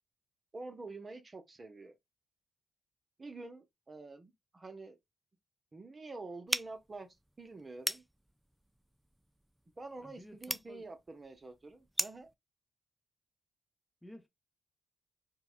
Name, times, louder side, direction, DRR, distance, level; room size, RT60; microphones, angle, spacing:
voice 1, 0.5-1.9 3.2-5.0 5.7-7.1 7.4-8.0 9.8-12.3, right 3 dB, 35° right, 0.9 m, -47 dB
sound 1, 6.5-12.3, equal, 5° right, 0.4 m, -40 dB
voice 2, 10.0-10.9 14.0-14.3, equal, 10° left, 0.9 m, -53 dB
4.5 x 2.3 x 2.4 m
hypercardioid pair, 40°, 0 cm